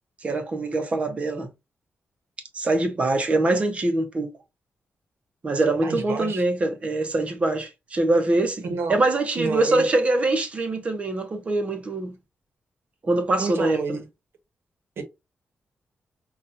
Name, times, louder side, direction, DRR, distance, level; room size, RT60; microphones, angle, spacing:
voice 1, 0.2-1.5 2.5-4.3 5.4-12.2 13.0-14.0, right 2 dB, 30° right, 0.7 m, -23 dB
voice 2, 5.8-6.4 8.7-9.0 9.4-9.9 13.4-14.0 15.0-15.1, right 4 dB, 60° right, 0.9 m, -29 dB
5.4 x 2.4 x 2.5 m
wide cardioid pair, 180°, 4 cm